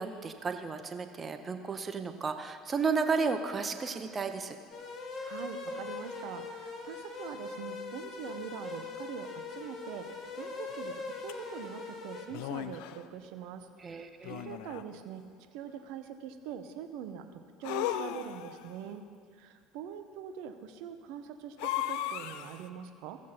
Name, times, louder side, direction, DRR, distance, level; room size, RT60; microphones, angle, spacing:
voice 1, 0.0-4.6 13.8-14.6, right 4 dB, 30° right, 8 dB, 0.9 m, -33 dB
sound 1, 4.7-12.3, left 3 dB, 45° left, 1.3 m, -41 dB
voice 2, 5.2-10.1 10.4-15.2 15.5-19.0 19.3-23.2, right 8 dB, 60° right, 8 dB, 0.7 m, -43 dB
sound 2, 11.3-11.4 12.3-13.0 14.2-15.0 17.6-18.7 21.6-22.7, left 12 dB, 65° left, 0.4 m, -36 dB
15.5 x 7.3 x 4.2 m, 2.2 s
figure-of-eight pair, 65°, 0 cm